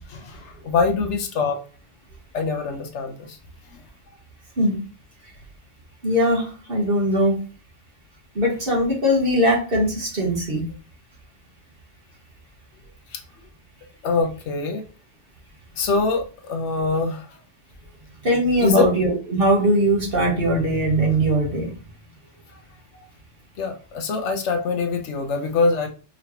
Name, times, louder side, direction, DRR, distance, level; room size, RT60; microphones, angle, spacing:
voice 1, 0.1-1.6 2.3-3.4 3.7-3.8 13.1-13.2 14.0-14.8 15.8-17.4 18.6-18.8 23.6-25.9, left 4 dB, 70° left, 4 dB, 0.9 m, -24 dB
voice 2, 6.0-7.4 8.3-10.6 18.2-21.7, equal, 45° right, -2 dB, 1.7 m, -20 dB
5.0 x 3.1 x 2.9 m, 0.36 s
omnidirectional pair, 1.3 m